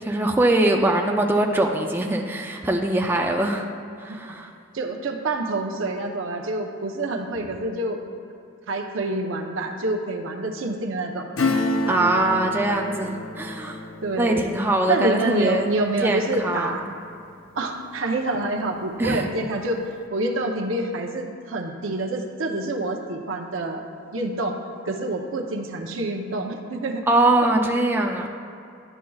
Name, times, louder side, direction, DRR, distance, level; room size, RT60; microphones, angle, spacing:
voice 1, 0.0-3.7 4.0-4.5 11.8-13.8 14.2-15.7 16.0-16.8 19.0-19.3 27.1-28.3, right 1 dB, 10° right, 1 dB, 0.4 m, -22 dB
voice 2, 4.7-8.0 8.7-11.3 14.0-14.5 14.9-16.9 17.6-23.8 24.1-24.6 24.8-27.0, right 2 dB, 75° right, 2 dB, 0.7 m, -27 dB
Acoustic guitar / Strum, 11.4-17.6 17.9-18.0, left 2 dB, 85° left, 0.7 m, -30 dB
11.0 x 7.3 x 2.3 m, 2.5 s
head